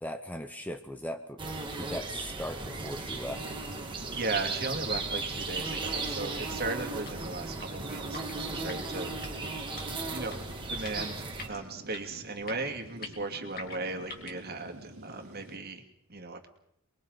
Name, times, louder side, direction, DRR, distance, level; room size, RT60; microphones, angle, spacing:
voice 1, 0.0-1.4 1.8-3.4, equal, 5° left, 7 dB, 0.7 m, -38 dB
sound 1, 1.4-11.5, right 3 dB, 20° right, 2.0 m, -36 dB
sound 2, 2.6-15.6, right 1 dB, 80° right, 2.3 m, -49 dB
voice 2, 4.1-9.1 10.1-10.4 10.7-15.8 16.1-16.5, right 3 dB, 45° right, 3 dB, 2.4 m, -37 dB
sound 3, 7.0-14.5, left 3 dB, 45° left, 3.0 m, -48 dB
29.0 x 22.5 x 4.0 m, 0.72 s
head